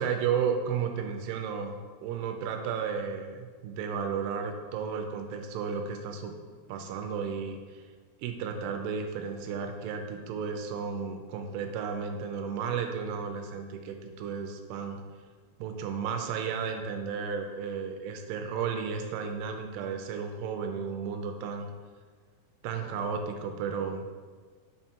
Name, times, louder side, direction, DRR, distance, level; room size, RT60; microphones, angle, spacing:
voice 1, 0.0-6.3 6.7-7.8 8.2-15.0 15.6-21.7 22.6-24.1, right 6 dB, 85° right, 5 dB, 2.5 m, -33 dB
5.9 x 4.5 x 4.3 m, 1.5 s
omnidirectional pair, 5.0 m